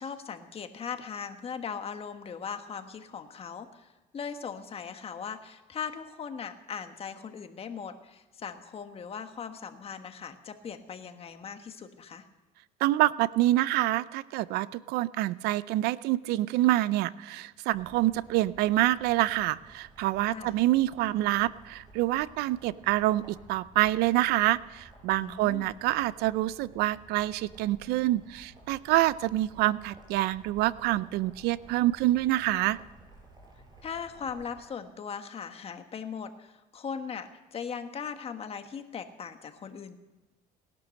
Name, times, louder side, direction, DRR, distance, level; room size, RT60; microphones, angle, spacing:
voice 1, 0.0-12.3 20.3-20.7 25.2-25.8 33.8-40.0, left 6 dB, 35° left, 7 dB, 1.5 m, -39 dB
voice 2, 12.8-32.8, right 16 dB, 80° right, 19 dB, 0.5 m, -26 dB
sound 1, 17.7-34.6, right 2 dB, 25° right, 5.2 m, -55 dB
18.5 x 11.5 x 6.5 m, 1.2 s
cardioid pair, 110°, 16 cm